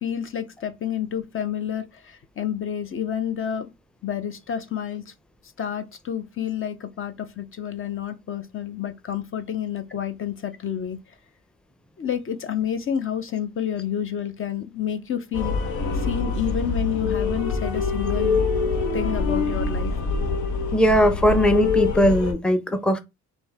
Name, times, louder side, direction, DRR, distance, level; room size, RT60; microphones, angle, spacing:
voice 1, 0.0-3.7 4.0-5.1 5.6-11.0 12.0-15.5 15.9-18.5 18.9-20.0, left 9 dB, 45° left, 0.6 m, -29 dB
sound 1, 15.3-22.3, left 4 dB, 90° left, 1.2 m, -25 dB
voice 2, 20.7-23.0, equal, 5° left, 0.6 m, -19 dB
5.2 x 2.7 x 3.5 m
cardioid pair, 90°, 30 cm